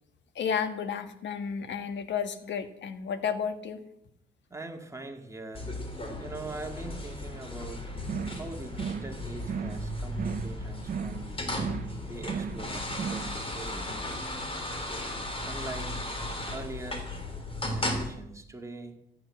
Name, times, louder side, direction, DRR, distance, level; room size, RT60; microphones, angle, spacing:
voice 1, 0.3-3.8, left 7 dB, 65° left, 9 dB, 1.6 m, -32 dB
voice 2, 4.5-5.7 6.2-7.9 8.2-11.8 12.1-14.0 15.4-16.1 16.5-17.1 17.7-19.0, right 2 dB, 15° right, 3 dB, 2.2 m, -42 dB
sound 1, 5.5-18.1, left 1 dB, 25° left, 3.5 m, -36 dB
sound 2, 8.0-8.5 8.7-9.1 9.4-9.9 10.1-10.6 10.8-11.3 11.5-11.9 12.2-12.7 12.9-13.3, right 7 dB, 45° right, 0.8 m, -35 dB
14.5 x 8.8 x 7.6 m, 0.77 s
cardioid pair, 90°, 20 cm